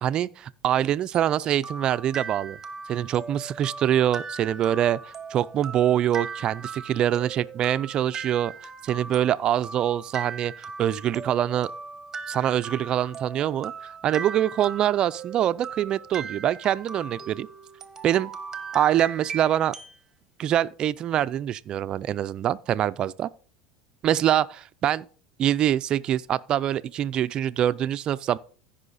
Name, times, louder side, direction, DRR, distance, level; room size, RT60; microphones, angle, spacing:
voice 1, 0.0-2.6 2.9-5.0 5.3-8.5 8.8-10.5 10.8-11.7 12.3-17.5 18.0-18.3 18.7-19.7 20.4-23.3 24.0-25.1 25.4-28.4, right 11 dB, 40° right, 0.4 m, -24 dB
sound 1, 1.1-20.0, right 5 dB, 20° right, 1.1 m, -39 dB
15.0 x 5.6 x 4.1 m
supercardioid pair, 125°, 2 cm